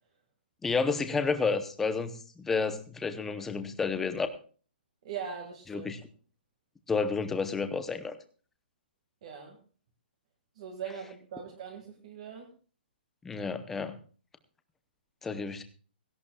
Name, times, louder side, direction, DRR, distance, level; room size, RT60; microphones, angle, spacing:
voice 1, 0.6-4.3 5.7-6.0 6.9-8.1 13.2-14.0 15.2-15.6, left 4 dB, 5° left, 9 dB, 0.7 m, -30 dB
voice 2, 5.0-5.9 9.2-9.6 10.6-12.5, right 7 dB, 35° right, 3 dB, 1.9 m, -41 dB
17.0 x 16.0 x 2.3 m, 0.38 s
hypercardioid pair, 175°, 6 cm